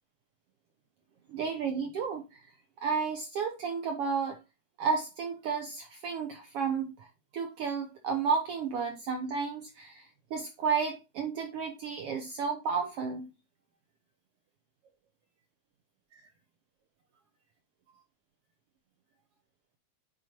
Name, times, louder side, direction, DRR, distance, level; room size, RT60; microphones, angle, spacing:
voice 1, 1.3-2.4 2.8-4.4 4.8-7.1 7.3-13.3 16.1-16.2, right 5 dB, 75° right, 1.4 m, -32 dB
7.5 x 4.3 x 3.0 m
omnidirectional pair, 3.4 m